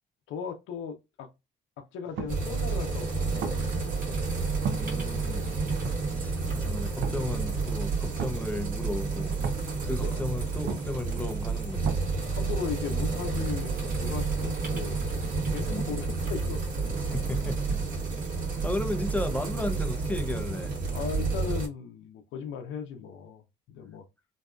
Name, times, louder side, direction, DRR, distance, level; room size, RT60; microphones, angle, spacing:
voice 1, 0.3-1.3 1.8-3.7 10.0-10.3 12.3-16.6 18.4-18.7 20.9-23.4 23.7-24.0, left 6 dB, 90° left, 0.6 m, -37 dB
sound 1, 2.0-12.8, right 6 dB, 75° right, 0.5 m, -40 dB
sound 2, 2.3-21.7, right 4 dB, 45° right, 1.1 m, -30 dB
voice 2, 4.6-5.5 6.1-9.4 9.8-11.9 15.7-15.9 17.0-17.8 18.6-20.7, left 2 dB, 5° left, 0.5 m, -34 dB
2.6 x 2.3 x 2.2 m
cardioid pair, 90°, 20 cm